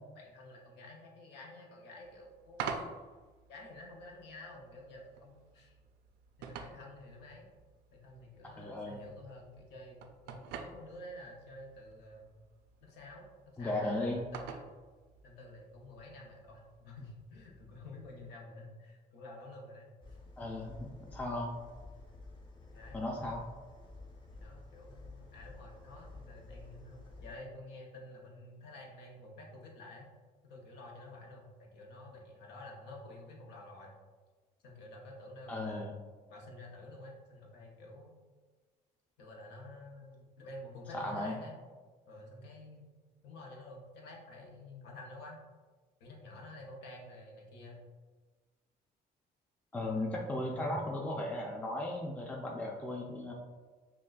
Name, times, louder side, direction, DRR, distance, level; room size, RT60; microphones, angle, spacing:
voice 1, 0.1-2.7 3.5-5.8 6.4-7.5 7.9-12.3 12.8-14.6 15.2-19.9 22.7-23.1 24.3-30.1 30.5-33.9 34.6-35.9 36.3-38.1 39.2-41.6 42.0-42.9 43.2-45.4 46.0-47.9 50.4-50.8, left 2 dB, 85° left, 0 dB, 0.8 m, -50 dB
sound 1, 2.0-18.3, right 6 dB, 80° right, 0.4 m, -49 dB
voice 2, 8.6-9.0 13.6-14.2 20.4-21.5 22.9-23.4 35.5-35.9 40.9-41.3 49.7-53.3, left 1 dB, 10° left, -1 dB, 0.4 m, -36 dB
sound 2, 20.0-27.4, left 2 dB, 30° left, 0.8 m, -52 dB
5.8 x 2.2 x 2.3 m, 1.4 s
cardioid pair, 110°, 17 cm